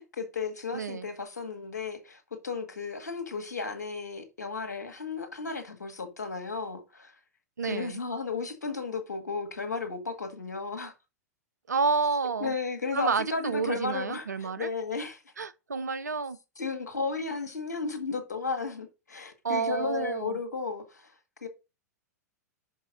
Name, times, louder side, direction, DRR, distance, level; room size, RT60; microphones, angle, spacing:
voice 1, 0.0-7.1 7.6-10.9 12.4-15.2 16.6-21.1 21.4-21.5, left 4 dB, 80° left, 1.6 m, -34 dB
voice 2, 0.7-1.1 7.6-8.0 11.7-12.5 12.9-14.7 15.4-16.4 19.4-20.4, right 5 dB, 80° right, 0.6 m, -29 dB
5.8 x 5.5 x 4.1 m
figure-of-eight pair, 95°, 9 cm